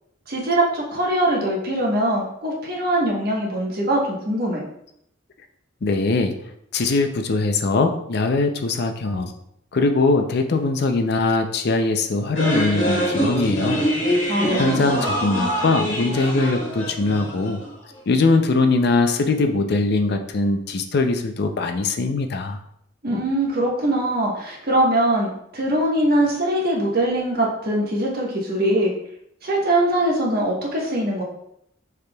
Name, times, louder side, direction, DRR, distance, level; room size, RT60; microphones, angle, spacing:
voice 1, 0.3-4.6 14.3-14.9 23.0-28.9 29.4-31.2, right 1 dB, 55° right, -2 dB, 1.2 m, -22 dB
voice 2, 5.8-6.4 6.7-9.3 9.7-13.8 14.1-17.6 18.1-22.6, left 3 dB, 60° left, 6 dB, 0.5 m, -21 dB
sound 1, 12.3-17.8, equal, 90° left, 1.8 m, -24 dB
6.5 x 3.4 x 2.3 m, 0.75 s
head